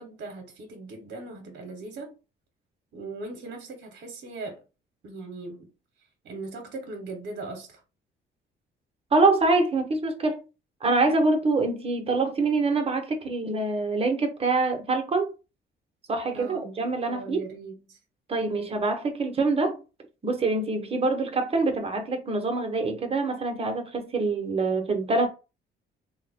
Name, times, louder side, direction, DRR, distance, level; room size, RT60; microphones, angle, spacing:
voice 1, 0.0-2.1 2.9-4.6 5.0-5.7 6.2-7.8 16.3-18.0, right 3 dB, 60° right, 0.8 m, -39 dB
voice 2, 9.1-10.4 10.8-15.3 16.1-17.5 18.3-19.8 20.2-25.3, right 3 dB, 30° right, 0.8 m, -25 dB
3.3 x 2.1 x 3.4 m
cardioid pair, 110°, 20 cm